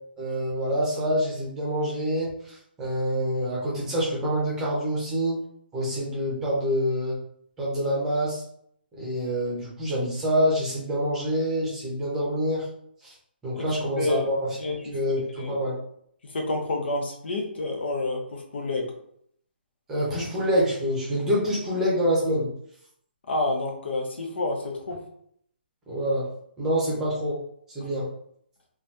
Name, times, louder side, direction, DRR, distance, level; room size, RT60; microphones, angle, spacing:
voice 1, 0.2-5.4 5.7-7.2 7.6-8.4 9.0-12.7 13.0-13.1 13.4-14.5 14.9-15.8 19.9-22.5 25.9-26.3 26.6-27.4 27.7-28.1, equal, 10° right, -6 dB, 0.8 m, -26 dB
voice 2, 13.5-14.3 14.6-14.9 15.4-15.6 16.3-18.9 23.3-25.0, left 2 dB, 75° left, 2 dB, 0.8 m, -29 dB
3.2 x 2.4 x 2.7 m, 0.67 s
hypercardioid pair, 165°, 6 cm